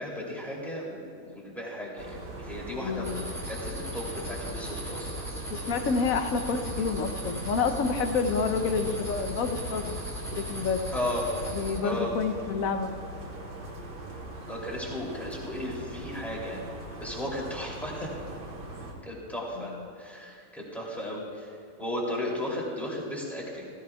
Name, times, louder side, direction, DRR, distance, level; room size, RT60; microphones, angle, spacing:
voice 1, 0.0-5.2 10.9-11.3 11.8-12.1 14.5-16.6 17.0-18.1 19.0-23.7, left 1 dB, ahead, -5 dB, 2.7 m, -35 dB
sound 1, 2.0-18.9, right 1 dB, 85° right, 2.3 m, -41 dB
voice 2, 2.8-3.2 5.5-10.0 10.3-10.8 11.5-12.9, left 5 dB, 60° left, 7 dB, 1.0 m, -28 dB
sound 2, 3.0-11.8, right 1 dB, 20° right, 2.9 m, -38 dB
16.5 x 15.5 x 2.3 m, 2.6 s
omnidirectional pair, 1.9 m